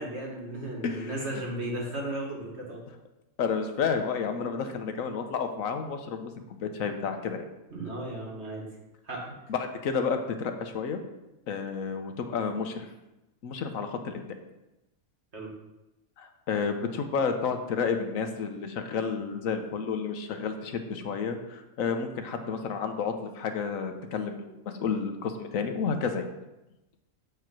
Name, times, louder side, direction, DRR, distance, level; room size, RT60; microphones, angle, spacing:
voice 1, 0.0-2.8 7.7-8.7 9.1-9.3 15.3-15.5, right 1 dB, 55° right, -2 dB, 2.1 m, -35 dB
voice 2, 0.8-1.4 3.4-7.4 9.5-11.0 11.5-12.9 13.4-14.2 16.2-26.3, left 5 dB, 85° left, 6 dB, 1.3 m, -31 dB
8.1 x 4.9 x 6.0 m, 0.96 s
omnidirectional pair, 1.4 m